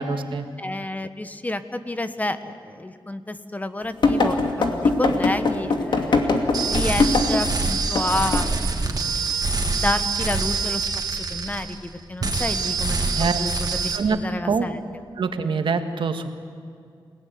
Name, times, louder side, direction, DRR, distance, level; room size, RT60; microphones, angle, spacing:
voice 1, 0.0-0.4 13.1-13.4 13.9-14.2 14.5-14.7 15.2-16.3, right 5 dB, 75° right, 7 dB, 1.8 m, -24 dB
voice 2, 0.6-6.2 6.6-9.3 9.8-10.9 11.3-13.5 13.8-14.8, left 2 dB, 20° left, 10 dB, 1.3 m, -30 dB
sound 1, 4.0-7.5 8.0-8.1 8.3-8.5, left 3 dB, 65° left, 2.5 m, -21 dB
sound 2, 6.5-11.9 12.2-14.0, right 4 dB, 45° right, 2.5 m, -25 dB
28.0 x 18.0 x 9.6 m, 2.3 s
cardioid pair, 80°, 9 cm